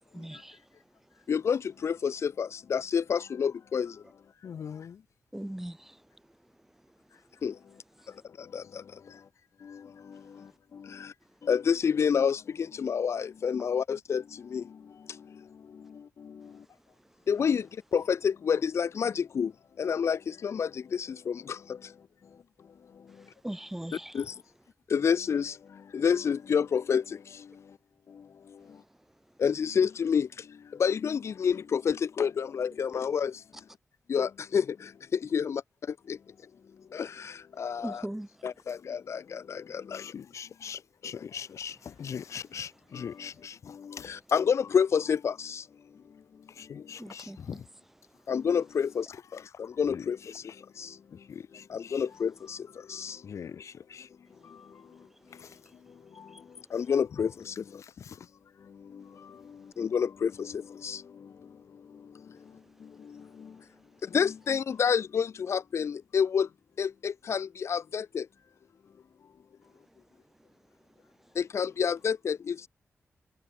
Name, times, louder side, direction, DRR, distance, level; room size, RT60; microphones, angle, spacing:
voice 1, 0.1-0.6 5.3-6.0 8.0-8.1 23.4-24.2 37.8-38.3 47.0-47.6 56.3-56.4, right 1 dB, 5° right, 4.4 m, -39 dB
voice 2, 1.3-4.0 7.4-7.6 8.1-9.3 9.6-11.1 11.4-16.6 17.3-19.5 19.8-22.0 22.9-23.2 24.1-24.4 24.9-27.8 28.1-28.8 29.4-33.6 34.1-36.2 36.9-38.0 38.4-40.1 41.1-41.3 42.9-43.1 43.7-45.7 46.6-46.7 48.3-51.2 51.7-53.2 54.4-55.5 56.0-57.8 58.6-63.6 64.0-66.5 66.8-68.3 71.3-72.7, left 7 dB, 65° left, 3.1 m, -30 dB
voice 3, 4.4-5.0 7.1-7.2 9.1-9.2 9.6-9.8 10.9-11.1 25.9-26.0 38.8-39.0 39.6-44.1 46.0-46.1 46.5-47.7 49.1-50.6 51.1-52.1 53.2-54.6 55.3-56.0 56.7-56.8 57.1-57.2 57.8-58.3 59.0-59.5, left 7 dB, 85° left, 7.8 m, -43 dB
wide cardioid pair, 175°, 5 cm